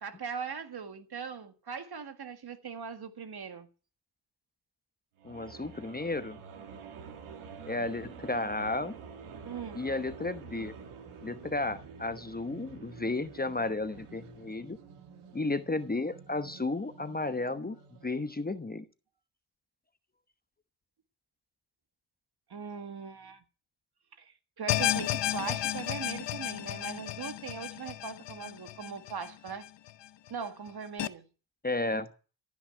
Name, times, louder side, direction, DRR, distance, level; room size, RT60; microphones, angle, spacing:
voice 1, 0.0-3.7 9.5-9.8 22.5-23.4 24.2-29.7 30.3-31.2, right 6 dB, 50° right, 1.8 m, -40 dB
voice 2, 5.2-6.4 7.6-9.0 9.7-10.7 11.2-14.8 15.3-17.8 18.0-18.8 31.6-32.1, left 2 dB, 20° left, 1.0 m, -33 dB
sound 1, 5.2-18.4, right 6 dB, 75° right, 2.1 m, -48 dB
sound 2, 24.7-29.9 30.3-30.4 31.0-31.1, left 13 dB, 60° left, 0.8 m, -33 dB
14.5 x 6.2 x 9.2 m
supercardioid pair, 45°, 50 cm